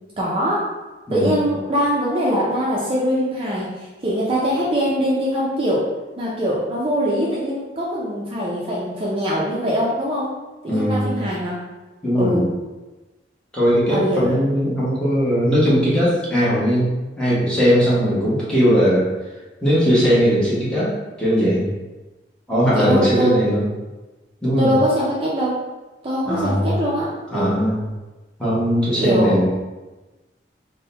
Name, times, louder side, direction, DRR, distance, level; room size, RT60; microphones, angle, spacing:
voice 1, 0.2-0.6 1.1-5.9 6.2-10.3 10.6-11.6 12.1-12.5 13.8-14.3 22.7-23.3 24.6-25.6 26.0-27.6 29.0-29.4, equal, 30° right, -6 dB, 0.6 m, -22 dB
voice 2, 1.1-1.4 10.7-11.1 12.0-12.5 13.5-16.9 17.2-19.1 19.6-20.9 21.2-21.7 22.5-23.6 24.4-24.7 26.2-26.6 27.3-27.8 28.4-29.5, equal, 5° left, -9 dB, 1.2 m, -19 dB
3.7 x 2.2 x 3.9 m, 1.2 s
head